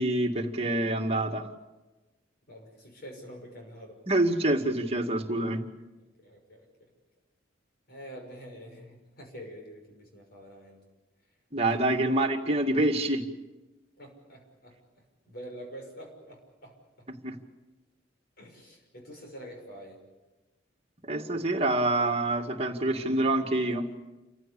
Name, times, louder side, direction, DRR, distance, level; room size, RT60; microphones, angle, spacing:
voice 1, 0.0-1.5 4.1-5.6 11.5-13.2 17.2-17.4 21.1-23.9, right 1 dB, 35° right, 2 dB, 2.1 m, -26 dB
voice 2, 2.5-4.0 6.0-6.9 7.9-10.8 11.6-11.8 14.0-14.8 15.3-16.8 18.4-20.0, equal, 55° left, 2 dB, 6.0 m, -46 dB
29.0 x 15.5 x 8.5 m, 1.1 s
head